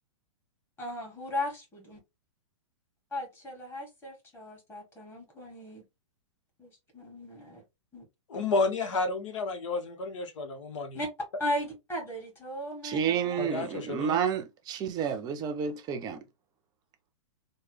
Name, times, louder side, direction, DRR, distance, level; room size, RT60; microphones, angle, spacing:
voice 1, 0.8-2.0 3.1-5.8 6.6-7.6 7.9-8.1 8.6-8.7 10.9-11.1 11.4-13.4, left 1 dB, 15° left, 1.8 m, -37 dB
voice 2, 8.3-11.0 13.4-14.2, left 3 dB, 70° left, 1.0 m, -31 dB
voice 3, 12.8-16.2, right 7 dB, 25° right, 0.6 m, -30 dB
3.2 x 2.2 x 3.2 m
hypercardioid pair, 135°, 16 cm